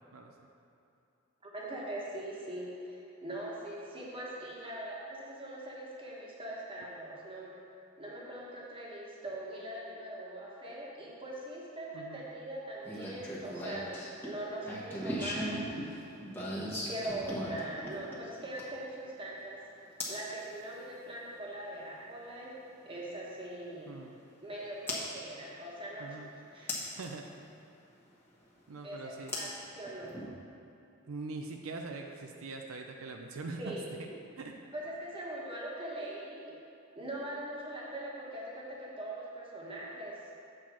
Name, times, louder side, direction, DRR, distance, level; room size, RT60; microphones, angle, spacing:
voice 1, 0.1-0.5 11.9-12.2 23.9-24.2 26.0-26.3 27.0-27.2 28.7-29.5 31.1-33.7 34.4-34.6, right 3 dB, 85° right, 3 dB, 0.6 m, -42 dB
voice 2, 1.4-7.5 8.0-15.7 16.5-24.0 24.4-27.0 28.8-30.2 33.6-33.9 34.7-36.6 36.9-40.2, right 1 dB, 25° right, -5 dB, 1.3 m, -42 dB
sound 1, 12.8-18.9 20.0-20.2 22.1-22.2 24.9-25.0 26.7-27.1 29.3-30.3, equal, 10° left, 1.2 m, -38 dB
7.6 x 4.4 x 6.2 m, 2.8 s
head